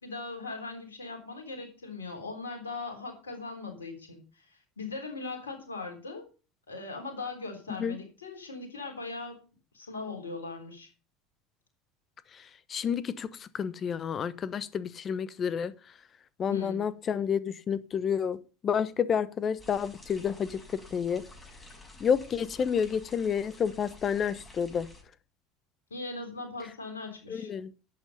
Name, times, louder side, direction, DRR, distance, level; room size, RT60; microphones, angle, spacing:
voice 1, 0.0-6.2 6.7-9.4 9.7-10.9 16.5-16.8 25.9-27.5, left 3 dB, 75° left, 3.7 m, -39 dB
voice 2, 12.7-15.7 16.4-18.4 18.6-20.6 20.9-21.2 22.0-24.9 27.3-27.7, left 7 dB, 35° left, 1.0 m, -29 dB
sound 1, 19.6-25.0, left 2 dB, 15° left, 6.0 m, -51 dB
11.5 x 8.4 x 5.3 m
figure-of-eight pair, 70°, 0 cm